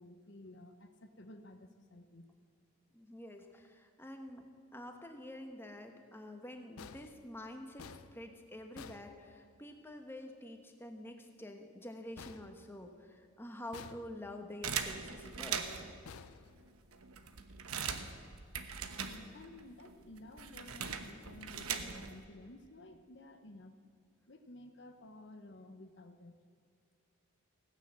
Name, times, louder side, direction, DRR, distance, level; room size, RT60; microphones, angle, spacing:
voice 1, 0.0-2.3 19.0-23.8 24.3-26.3, left 1 dB, 55° left, 7 dB, 0.9 m, -53 dB
voice 2, 2.9-15.7, left 1 dB, 10° left, 5 dB, 1.1 m, -48 dB
sound 1, 6.8-9.8 12.2-13.2 13.7-14.5 16.0-17.1, left 5 dB, 80° left, 0.6 m, -54 dB
sound 2, 14.6-16.0 16.6-16.7 16.9-19.6 19.8-22.2, right 6 dB, 85° right, 1.1 m, -40 dB
16.5 x 9.8 x 7.4 m, 2.2 s
head